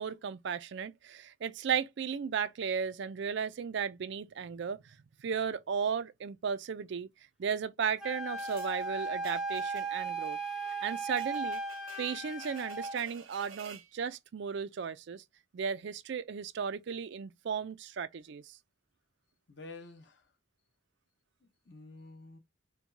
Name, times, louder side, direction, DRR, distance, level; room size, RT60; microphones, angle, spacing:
voice 1, 0.0-7.1 7.4-10.4 10.8-11.6 12.0-15.2 15.5-18.6, right 6 dB, 55° right, 0.4 m, -35 dB
Wind instrument woodwind instrument, 8.0-13.0, right 3 dB, 5° right, 0.6 m, -36 dB
sound 1, 8.4-13.9, right 7 dB, 85° right, 0.8 m, -53 dB
voice 2, 19.5-20.3 21.4-22.4, left 3 dB, 55° left, 1.0 m, -50 dB
4.5 x 2.2 x 2.6 m
head